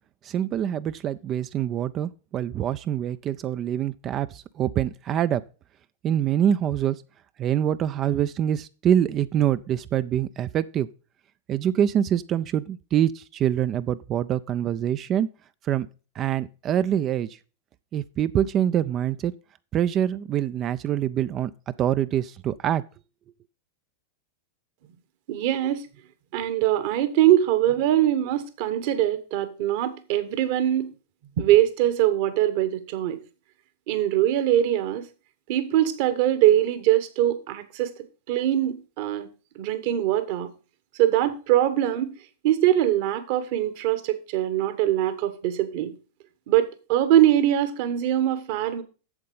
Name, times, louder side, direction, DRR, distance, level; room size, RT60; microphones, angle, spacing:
voice 1, 0.2-5.4 6.0-7.0 7.4-10.9 11.5-15.3 15.6-15.9 16.2-17.4 17.9-19.3 19.7-21.5 21.8-22.8, right 10 dB, 30° right, 0.4 m, -25 dB
voice 2, 25.3-25.8 26.3-30.9 31.4-33.2 33.9-35.1 35.5-37.9 38.3-39.3 39.6-40.5 41.0-42.1 42.4-45.9 46.5-48.8, right 12 dB, 50° right, 1.2 m, -22 dB
8.0 x 7.4 x 5.4 m
figure-of-eight pair, 90°, 0 cm